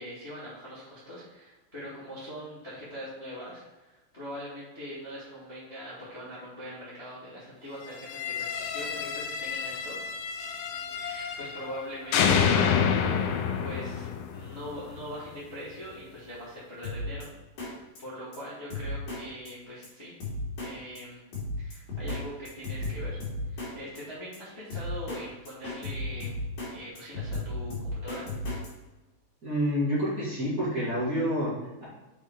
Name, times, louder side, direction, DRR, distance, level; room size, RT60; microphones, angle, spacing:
voice 1, 0.0-9.9 10.9-12.9 13.6-17.3 17.6-20.1 20.6-21.2 21.6-26.3 26.7-28.3, equal, 25° left, -9 dB, 1.7 m, -42 dB
sound 1, 8.0-11.8 12.1-15.1, left 7 dB, 85° left, 2.6 m, -28 dB
Drum kit, 16.8-17.2 17.6-17.7 18.0-18.1 18.3-18.4 18.7-19.2 19.5-19.6 19.8-19.9 20.2-20.7 21.0-21.1 21.3-22.2 22.5-23.7 24.0-24.1 24.3-24.4 24.7-25.2 25.5-26.7 27.0-28.7, left 2 dB, 55° left, 3.7 m, -34 dB
voice 2, 29.4-31.8, equal, 25° right, -9 dB, 2.3 m, -28 dB
6.9 x 5.9 x 4.6 m, 1.1 s
omnidirectional pair, 4.1 m